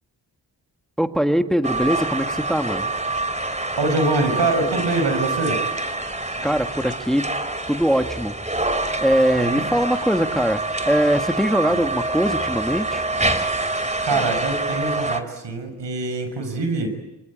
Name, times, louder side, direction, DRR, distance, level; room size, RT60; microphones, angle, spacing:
voice 1, 1.0-2.9 6.4-7.3 7.7-8.3 9.0-10.6 10.8-13.0, equal, ahead, 7 dB, 1.6 m, -21 dB
sound 1, 1.6-15.2, right 2 dB, 15° right, 2.9 m, -26 dB
voice 2, 3.5-5.6 9.4-9.6 11.7-11.8 14.0-17.0, right 2 dB, 75° right, 7 dB, 6.2 m, -24 dB
26.0 x 25.0 x 8.7 m, 1.0 s
cardioid pair, 50°, 43 cm